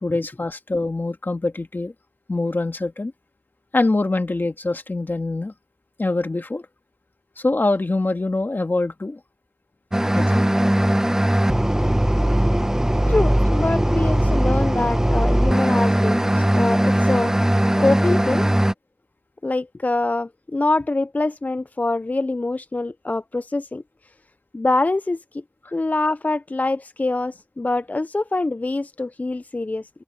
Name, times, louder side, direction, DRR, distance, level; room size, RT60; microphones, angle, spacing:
voice 1, 0.0-1.9 2.3-3.1 3.7-5.5 6.0-6.6 7.4-9.2 10.1-10.5, left 2 dB, 80° left, 1.7 m, -24 dB
sound 1, 9.9-18.7, right 1 dB, 15° right, 1.1 m, -19 dB
voice 2, 13.1-17.3 17.8-18.4 19.4-23.8 24.5-25.4 25.7-29.9, left 2 dB, 50° left, 0.3 m, -24 dB
open air
wide cardioid pair, 40°, 3 cm